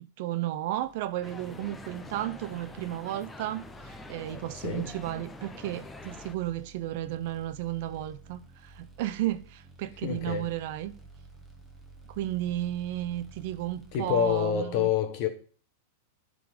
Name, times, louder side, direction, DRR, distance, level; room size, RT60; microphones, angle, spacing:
voice 1, 0.2-10.9 12.1-14.9, right 14 dB, 55° right, 0.6 m, -33 dB
sound 1, 0.7-14.5, right 2 dB, 10° right, 1.0 m, -53 dB
sound 2, 1.2-6.3, left 3 dB, 10° left, 0.5 m, -46 dB
voice 2, 10.0-10.5 13.9-15.3, left 9 dB, 45° left, 1.3 m, -27 dB
10.5 x 3.8 x 5.0 m
supercardioid pair, 145°, 0 cm